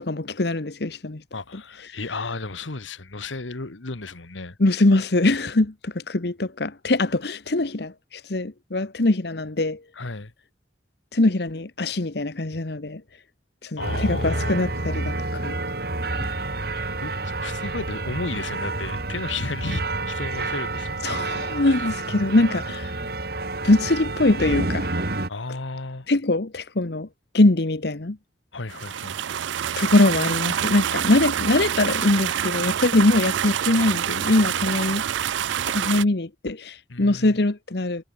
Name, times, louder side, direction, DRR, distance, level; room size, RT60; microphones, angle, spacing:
voice 1, 0.0-1.2 1.5-1.6 1.9-2.0 4.6-9.8 11.1-13.0 13.6-15.6 16.2-16.3 21.0-22.9 23.6-24.9 26.1-27.1 27.3-28.2 29.8-35.0 35.7-38.0, left 2 dB, 60° left, 1.1 m, -22 dB
voice 2, 1.3-4.6 9.9-10.3 13.8-14.6 17.0-21.2 21.8-21.9 25.3-26.1 28.5-29.2 36.9-37.4, left 3 dB, 90° left, 1.6 m, -33 dB
sound 1, 13.8-25.3, right 2 dB, 55° right, 2.9 m, -29 dB
sound 2, 28.7-36.0, right 9 dB, 80° right, 0.4 m, -26 dB
head